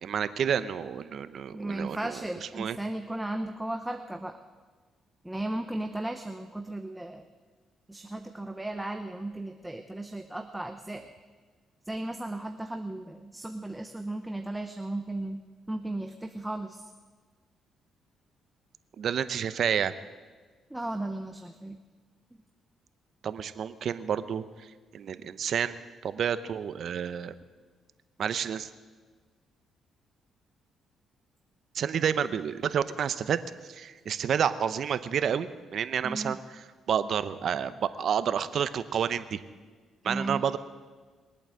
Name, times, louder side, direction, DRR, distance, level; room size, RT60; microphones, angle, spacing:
voice 1, 0.0-2.2 2.6-2.8 19.0-19.9 23.2-24.4 24.9-27.3 28.2-28.7 31.7-33.4 33.7-36.4 36.9-39.4 40.0-40.6, right 8 dB, 60° right, 13 dB, 0.8 m, -29 dB
voice 2, 1.5-4.4 5.2-7.3 7.9-11.1 11.9-16.9 20.7-21.8 36.0-36.4 40.0-40.4, right 1 dB, 10° right, 6 dB, 0.9 m, -35 dB
21.5 x 8.8 x 7.7 m, 1.5 s
cardioid pair, 90°, 0 cm